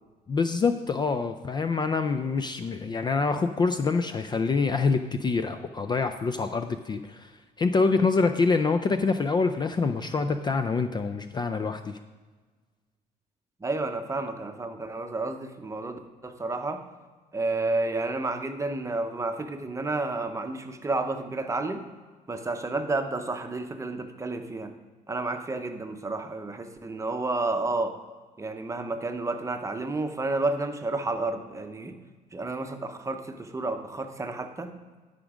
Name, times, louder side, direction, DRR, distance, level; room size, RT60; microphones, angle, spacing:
voice 1, 0.3-7.3 7.6-12.0, left 4 dB, 25° left, 9 dB, 0.4 m, -26 dB
voice 2, 13.6-16.8 17.3-21.8 22.3-24.7 25.1-27.9 28.4-32.0 32.3-34.7, right 2 dB, 20° right, 6 dB, 0.8 m, -31 dB
12.5 x 5.1 x 4.9 m, 1.4 s
cardioid pair, 110°, 17 cm